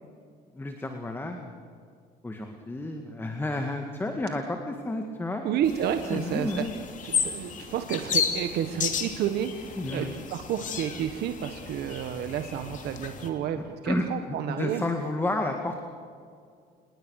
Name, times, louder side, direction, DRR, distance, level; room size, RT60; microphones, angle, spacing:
voice 1, 0.5-1.6 2.2-5.5 6.1-6.7 9.8-10.1 13.5-15.8, left 2 dB, 15° left, 4 dB, 2.1 m, -31 dB
voice 2, 5.4-6.6 7.1-14.8, right 9 dB, 75° right, 7 dB, 1.4 m, -30 dB
sound 1, 5.6-13.3, left 6 dB, 50° left, 3.0 m, -33 dB
27.5 x 20.5 x 6.6 m, 2.3 s
cardioid pair, 110°, 17 cm